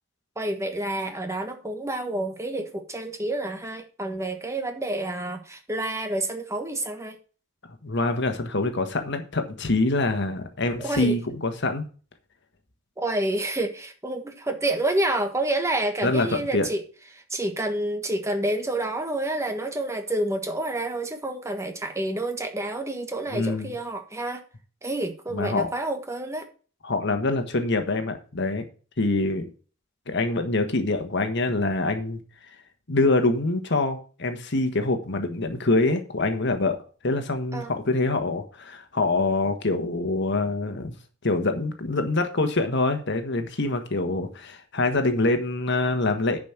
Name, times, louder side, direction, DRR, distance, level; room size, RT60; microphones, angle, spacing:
voice 1, 0.4-7.1 10.8-11.1 13.0-16.8 17.1-24.4 24.8-26.5 37.5-37.7, right 1 dB, 15° right, 6 dB, 1.4 m, -28 dB
voice 2, 7.8-11.9 16.0-16.7 23.3-23.7 25.3-25.7 26.8-28.7 29.0-29.5 30.1-32.2 32.9-40.9 41.2-46.4, left 2 dB, 60° left, 7 dB, 1.5 m, -25 dB
10.5 x 5.2 x 6.0 m, 0.38 s
head